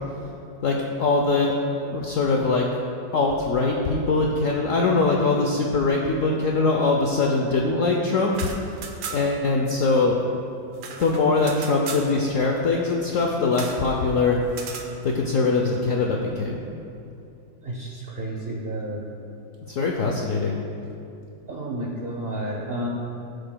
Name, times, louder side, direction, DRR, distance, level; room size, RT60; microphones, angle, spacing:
voice 1, 0.6-1.6 1.8-2.7 3.1-8.4 8.7-8.8 9.1-10.2 11.0-14.4 15.0-16.6 19.7-20.6, left 3 dB, 75° left, 0 dB, 0.7 m, -22 dB
sound 1, 8.3-9.5 9.7-9.8 10.1-12.1 13.5-13.8 14.5-14.9, right 5 dB, 85° right, 1.6 m, -36 dB
voice 2, 17.6-19.0 21.5-22.9, right 1 dB, 55° right, -2 dB, 0.6 m, -31 dB
17.5 x 6.6 x 2.2 m, 2.6 s
omnidirectional pair, 2.2 m